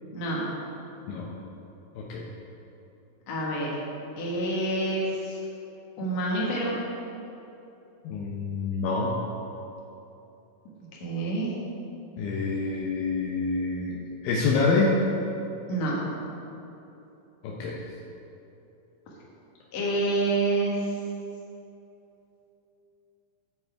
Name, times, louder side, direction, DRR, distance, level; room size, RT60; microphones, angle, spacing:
voice 1, 0.1-0.4 3.3-3.7 4.2-5.4 6.0-6.7 11.0-11.5 15.7-16.0 19.7-20.9, right 2 dB, 55° left, -4 dB, 2.5 m, -27 dB
voice 2, 2.0-2.3 8.1-9.1 12.2-14.9 17.4-17.8, left 4 dB, 80° left, -2 dB, 2.4 m, -27 dB
9.3 x 6.9 x 4.6 m, 2.9 s
omnidirectional pair, 4.1 m